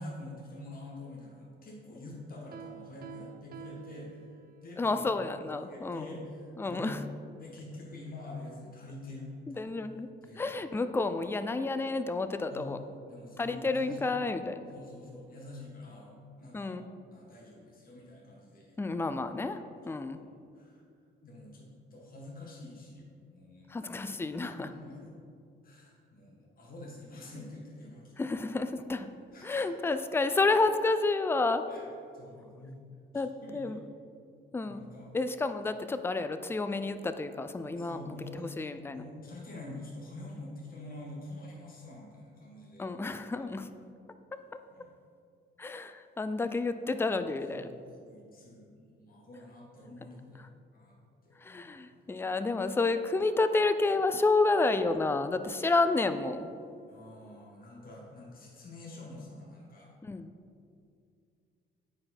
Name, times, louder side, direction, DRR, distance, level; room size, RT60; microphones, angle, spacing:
voice 1, 0.0-4.1 4.6-4.9 5.6-6.9 7.4-9.7 10.2-10.5 12.5-12.8 13.1-14.1 14.7-16.7 17.1-18.8 20.1-20.8 21.2-23.9 24.4-25.1 25.6-28.1 29.3-29.8 31.7-31.8 32.1-32.8 33.4-33.8 34.6-35.1 37.8-43.5 44.7-44.9 47.5-50.9 51.2-52.0 56.9-59.9, left 2 dB, 45° left, -3 dB, 1.6 m, -47 dB
Piano, 2.5-4.8, right 9 dB, 50° right, 0.5 m, -48 dB
voice 2, 4.8-6.2 6.6-7.0 9.6-10.1 10.4-12.8 13.4-14.6 16.5-16.8 18.8-19.6 19.9-20.2 23.7-24.7 28.2-29.1 29.4-31.6 33.1-33.8 34.5-34.8 35.1-39.0 42.8-43.7 45.6-47.7 51.4-56.5 60.0-60.3, left 3 dB, 10° left, 10 dB, 0.4 m, -30 dB
9.5 x 4.5 x 4.3 m, 2.4 s
cardioid pair, 90°, 20 cm